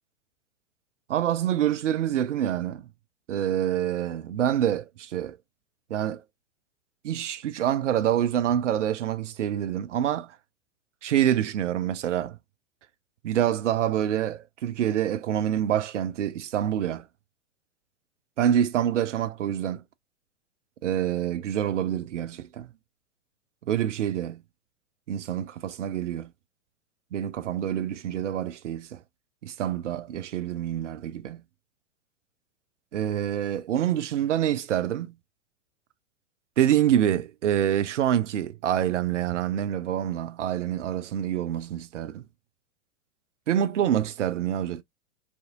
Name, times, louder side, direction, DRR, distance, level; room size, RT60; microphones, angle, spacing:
voice 1, 1.1-2.8 3.3-5.4 5.9-6.2 7.0-10.3 11.0-12.4 13.2-17.0 18.4-19.8 20.8-22.7 23.7-24.4 25.1-26.3 27.1-29.0 29.4-31.4 32.9-35.1 36.6-42.2 43.5-44.8, right 10 dB, 70° right, 0.6 m, -26 dB
2.6 x 2.5 x 2.4 m
figure-of-eight pair, 105°, 37 cm